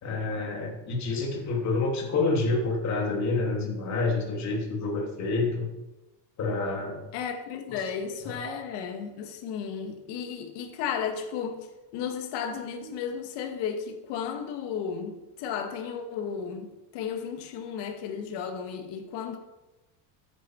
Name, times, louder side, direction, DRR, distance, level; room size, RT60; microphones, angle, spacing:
voice 1, 0.0-5.7 6.4-7.1 8.2-8.4, left 3 dB, 35° left, -1 dB, 3.2 m, -28 dB
voice 2, 7.1-11.7 11.9-16.7 16.9-19.4, left 7 dB, 55° left, 4 dB, 2.2 m, -34 dB
13.5 x 10.0 x 4.8 m, 1.0 s
cardioid pair, 165°, 49 cm